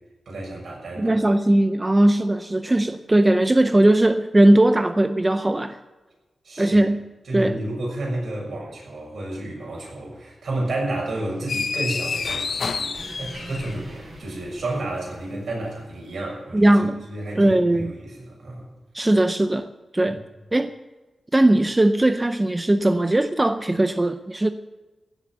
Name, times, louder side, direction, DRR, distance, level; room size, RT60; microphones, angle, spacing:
voice 1, 0.3-1.2 6.4-6.8 7.2-18.7 20.1-20.2, right 1 dB, 70° right, -2 dB, 6.9 m, -31 dB
voice 2, 1.0-5.8 6.6-7.0 7.3-7.6 16.5-17.0 17.4-18.0 18.9-19.7 19.9-20.2 20.5-20.7 21.3-24.5, right 1 dB, 15° right, 9 dB, 0.5 m, -19 dB
sound 1, 11.0-15.7, right 1 dB, 45° right, 4.3 m, -45 dB
sound 2, 11.5-14.0, left 4 dB, 60° left, 0.9 m, -28 dB
16.0 x 7.7 x 9.0 m, 1.1 s
wide cardioid pair, 155°, 0 cm